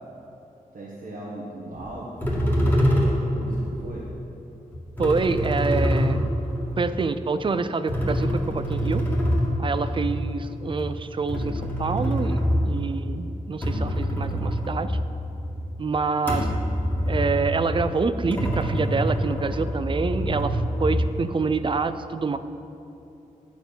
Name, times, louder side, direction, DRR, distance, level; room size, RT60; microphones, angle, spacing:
voice 1, 0.7-2.4 2.9-4.1, right 1 dB, 70° right, -6 dB, 1.4 m, -39 dB
sound 1, 1.7-1.9 2.2-3.9 4.7-7.3 7.9-13.1 13.5-15.7 16.2-21.3, equal, 10° left, 1.9 m, -25 dB
voice 2, 5.0-6.3 6.8-9.0 9.6-15.0 15.8-16.5 17.1-22.4, right 4 dB, 35° right, 12 dB, 0.4 m, -27 dB
9.0 x 4.7 x 6.6 m, 2.9 s
wide cardioid pair, 90°, 15 cm